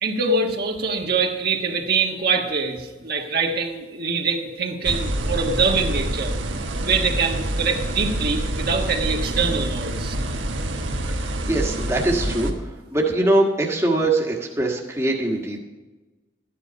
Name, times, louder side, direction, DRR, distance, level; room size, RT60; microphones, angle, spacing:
voice 1, 0.0-6.3 6.8-10.2, right 4 dB, 55° right, 1 dB, 1.4 m, -24 dB
sound 1, 4.8-12.5, right 1 dB, 85° right, 1.5 m, -27 dB
voice 2, 11.1-15.6, right 2 dB, 15° right, -1 dB, 1.5 m, -22 dB
13.0 x 10.0 x 5.3 m, 1.2 s
head